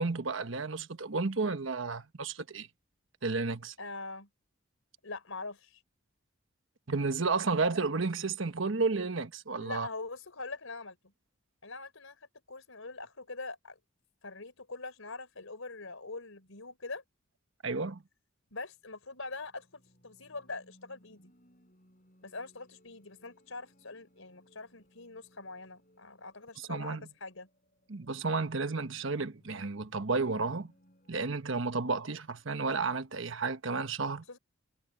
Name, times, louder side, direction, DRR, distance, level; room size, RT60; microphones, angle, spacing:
voice 1, 0.0-2.7 3.2-3.7 6.9-9.9 17.6-18.0 26.6-27.0 27.9-30.7 31.1-34.4, right 4 dB, 70° right, 1.2 m, -32 dB
voice 2, 3.8-4.3 5.0-5.8 9.6-11.0 11.6-12.2 12.5-13.8 14.2-17.0 18.5-21.3 22.2-27.5 34.3-34.4, left 3 dB, 90° left, 4.4 m, -43 dB
sound 1, 18.5-32.8, equal, 40° left, 7.4 m, -65 dB
head